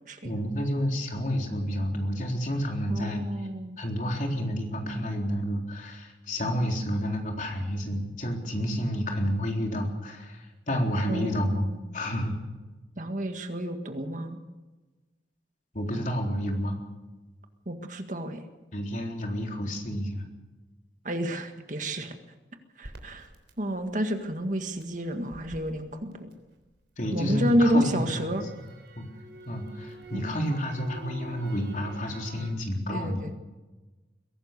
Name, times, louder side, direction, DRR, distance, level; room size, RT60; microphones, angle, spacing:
voice 1, 0.2-3.2 3.8-12.4 15.7-16.8 18.7-20.3 27.0-28.4 28.9-29.1 29.5-33.2, equal, 45° left, 1 dB, 3.9 m, -30 dB
voice 2, 2.9-3.8 11.1-11.8 13.0-14.4 17.6-18.4 21.0-22.2 22.8-23.3 23.6-26.3 27.1-28.4 32.9-33.3, equal, 45° right, 6 dB, 1.8 m, -29 dB
Crackle, 22.8-27.0 27.3-32.5, right 2 dB, 75° right, 3.5 m, -47 dB
22.5 x 17.5 x 6.8 m, 1.2 s
head